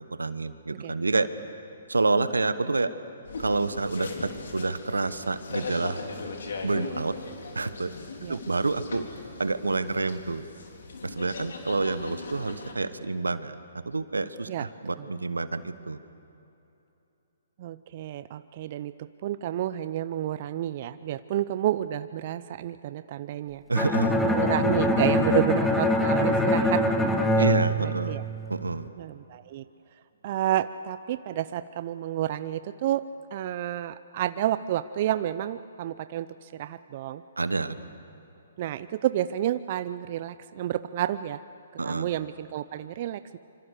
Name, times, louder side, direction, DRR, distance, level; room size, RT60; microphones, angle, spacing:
voice 1, 0.2-1.3 1.9-2.9 3.4-6.0 6.6-7.2 7.5-7.9 8.3-9.0 9.4-10.4 11.0-13.6 13.8-16.0 23.7-24.2 27.4-28.2 28.5-28.9 37.4-37.8 41.8-42.1, right 3 dB, 85° right, 13 dB, 1.1 m, -28 dB
sound 1, 3.2-12.7, left 4 dB, 70° left, 3.4 m, -39 dB
voice 2, 17.6-23.6 24.2-26.8 27.3-27.5 27.8-28.2 29.0-29.6 30.2-33.0 33.3-37.2 38.6-41.4 41.8-43.4, right 12 dB, 45° right, 13 dB, 0.6 m, -30 dB
Bowed string instrument, 23.8-28.7, left 1 dB, 5° left, 1.6 m, -24 dB
26.0 x 25.5 x 6.7 m, 2.8 s
figure-of-eight pair, 135°, 0 cm